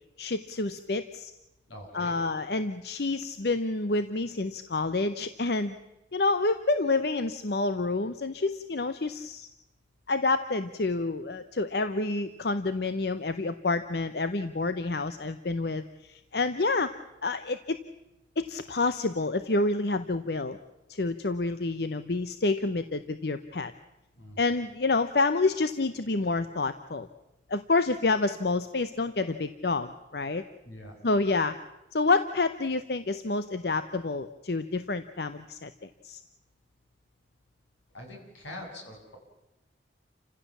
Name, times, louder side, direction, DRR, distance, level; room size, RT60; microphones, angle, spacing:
voice 1, 0.2-1.3 1.9-5.8 6.1-9.5 10.1-16.9 17.2-17.8 18.4-20.6 20.9-23.7 24.4-27.1 27.5-30.4 31.0-31.6 31.9-36.2, left 3 dB, 60° left, 11 dB, 0.7 m, -28 dB
voice 2, 1.7-2.2 24.1-24.4 30.6-31.0 37.9-39.2, left 1 dB, 85° left, 1 dB, 7.0 m, -44 dB
29.0 x 15.5 x 7.3 m, 0.96 s
head